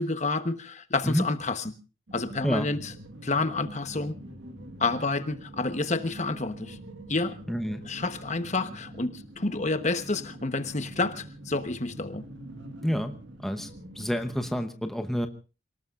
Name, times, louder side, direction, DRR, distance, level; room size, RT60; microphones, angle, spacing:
voice 1, 0.0-1.7 2.1-2.9 3.2-4.2 4.8-6.8 7.1-7.4 7.8-12.2, left 3 dB, 35° left, 9 dB, 1.1 m, -29 dB
sound 1, 2.1-14.6, right 1 dB, 65° right, 1.7 m, -44 dB
voice 2, 7.5-7.8 12.8-13.1 13.4-13.7 14.0-15.3, equal, ahead, 6 dB, 1.0 m, -28 dB
28.5 x 19.0 x 2.5 m, 0.33 s
head